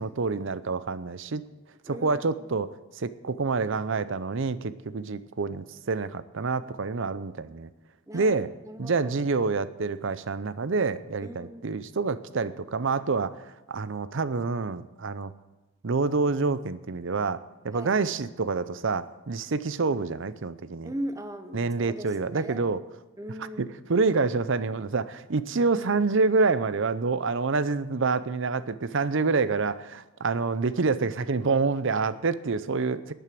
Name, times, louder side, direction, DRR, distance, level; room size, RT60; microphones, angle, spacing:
voice 1, 0.0-1.4 1.9-2.7 3.0-7.7 8.1-8.5 8.8-13.4 13.7-15.3 15.8-17.4 17.6-20.9 21.5-22.8 23.6-33.1, right 4 dB, 60° right, 15 dB, 0.6 m, -27 dB
voice 2, 1.8-2.3 8.1-9.1 11.2-11.8 17.7-18.0 20.8-22.7 23.2-23.8, equal, 15° right, 8 dB, 0.9 m, -39 dB
12.5 x 9.1 x 7.7 m, 1.1 s
head